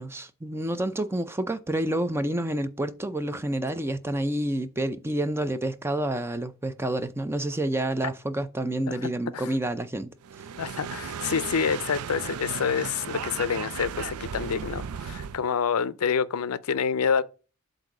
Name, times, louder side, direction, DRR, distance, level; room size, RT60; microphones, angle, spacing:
voice 1, 0.0-10.1, right 1 dB, 10° right, 0.4 m, -29 dB
voice 2, 8.9-9.5 10.6-17.2, left 6 dB, 75° left, 0.5 m, -27 dB
sound 1, 10.2-15.4, right 7 dB, 75° right, 0.4 m, -35 dB
7.7 x 2.7 x 5.9 m
head